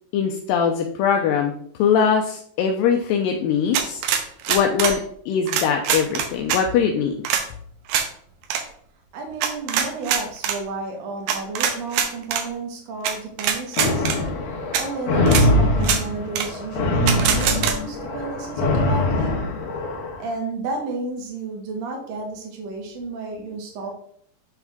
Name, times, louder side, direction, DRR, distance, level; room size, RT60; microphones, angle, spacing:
voice 1, 0.1-1.5 1.8-4.0 4.5-5.0 5.3-7.1, left 7 dB, 80° left, 2 dB, 2.2 m, -21 dB
sound 1, 3.7-5.0 5.5-6.6 7.2-7.4 7.9-8.1 8.4-8.6 9.4-10.6 11.3-12.4 13.0-13.1 13.4-14.2 14.7-14.8 15.3-15.4 15.8-16.0 16.3-16.5 17.1-17.7, right 8 dB, 85° right, 2.5 m, -22 dB
voice 2, 9.1-14.1 14.7-19.4 20.2-23.9, right 3 dB, 55° right, 1 dB, 2.3 m, -32 dB
sound 2, 13.8-20.2, left 1 dB, 60° left, 2.1 m, -22 dB
9.3 x 3.5 x 3.5 m, 0.62 s
omnidirectional pair, 4.1 m